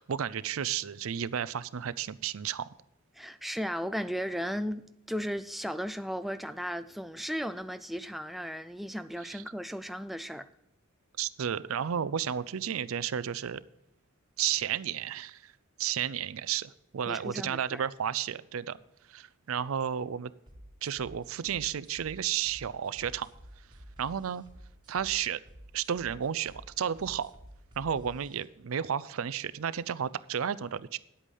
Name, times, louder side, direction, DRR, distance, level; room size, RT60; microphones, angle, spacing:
voice 1, 0.0-2.7 9.2-9.4 11.2-13.6 14.4-15.5 15.8-18.8 19.1-20.3 20.8-23.3 24.0-24.4 24.9-25.4 25.7-27.3 27.8-31.0, right 8 dB, 75° right, 0.5 m, -32 dB
voice 2, 3.1-10.5 17.1-17.8, equal, ahead, 0.3 m, -35 dB
sound 1, 20.5-28.4, equal, 20° right, 1.5 m, -52 dB
10.0 x 8.3 x 5.4 m
head